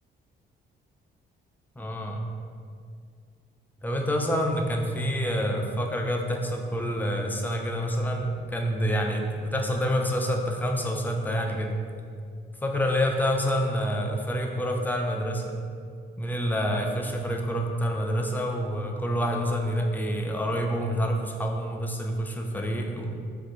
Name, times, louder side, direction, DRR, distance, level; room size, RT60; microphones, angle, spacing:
voice 1, 1.8-2.2 3.8-11.8 12.6-15.6 16.2-23.1, equal, 10° left, 2 dB, 0.3 m, -27 dB
2.6 x 2.4 x 3.6 m, 2.2 s
cardioid pair, 90°, 20 cm